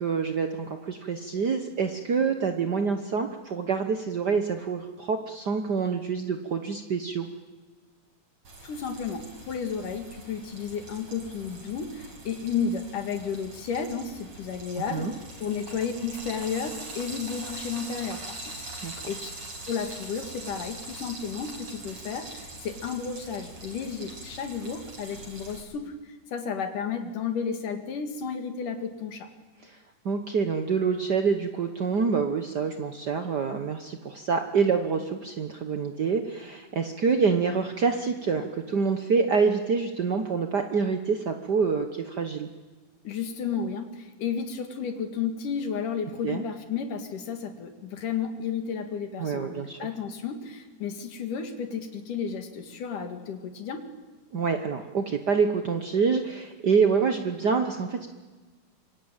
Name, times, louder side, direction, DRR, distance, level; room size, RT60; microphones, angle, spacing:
voice 1, 0.0-7.3 14.9-15.1 18.8-18.9 29.6-29.8 30.0-42.5 46.2-46.4 49.2-49.9 54.3-58.1, right 5 dB, 80° right, 6 dB, 0.9 m, -26 dB
Frying (food), 8.4-25.6, right 2 dB, 50° right, 6.0 m, -42 dB
voice 2, 8.6-18.6 18.8-19.3 19.7-29.3 43.1-53.8, left 6 dB, 75° left, 7 dB, 3.6 m, -32 dB
26.0 x 24.0 x 9.0 m, 1.3 s
omnidirectional pair, 3.8 m